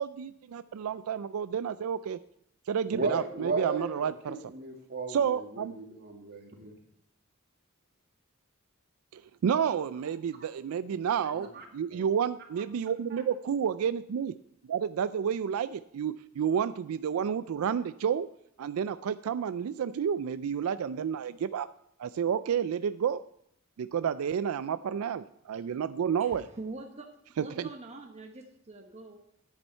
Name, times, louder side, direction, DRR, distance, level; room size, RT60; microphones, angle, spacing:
voice 1, 0.0-2.2 2.7-4.5 5.1-5.7 9.1-14.3 14.6-18.3 18.6-21.7 22.0-23.2 23.8-26.5 27.4-27.7, right 7 dB, 90° right, 13 dB, 0.4 m, -30 dB
voice 2, 2.9-6.7 11.2-11.6 11.9-12.0 13.1-13.2, right 3 dB, 50° right, 2 dB, 2.1 m, -36 dB
voice 3, 26.2-27.1 27.4-29.2, right 2 dB, 30° right, 2 dB, 1.0 m, -44 dB
9.9 x 9.8 x 4.4 m, 0.74 s
head